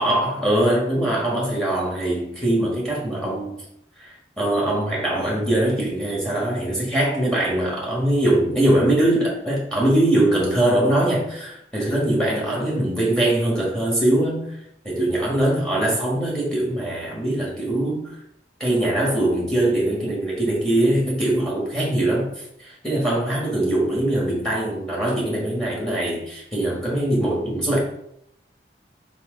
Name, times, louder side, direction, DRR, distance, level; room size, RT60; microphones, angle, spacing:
voice 1, 0.0-3.6 4.0-14.6 14.8-18.1 18.6-27.8, right 1 dB, 5° left, -3 dB, 1.5 m, -22 dB
6.0 x 4.9 x 3.8 m, 0.75 s
head